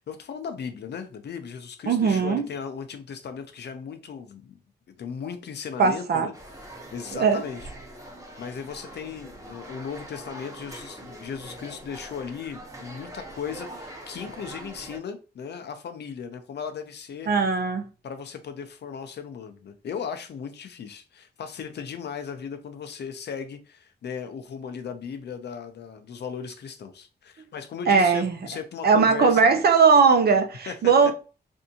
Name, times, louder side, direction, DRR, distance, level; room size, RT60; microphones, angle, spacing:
voice 1, 0.1-4.6 4.9-6.3 6.6-7.7 8.4-17.3 18.0-29.4 30.7-30.8, left 6 dB, 75° left, 0.6 m, -37 dB
voice 2, 1.9-2.5 5.8-6.3 7.1-7.4 17.3-17.8 27.9-28.4 28.8-31.1, right 5 dB, 65° right, 0.6 m, -19 dB
sound 1, 6.3-15.0, right 1 dB, 20° right, 0.8 m, -43 dB
3.4 x 2.7 x 2.7 m
wide cardioid pair, 135°, 18 cm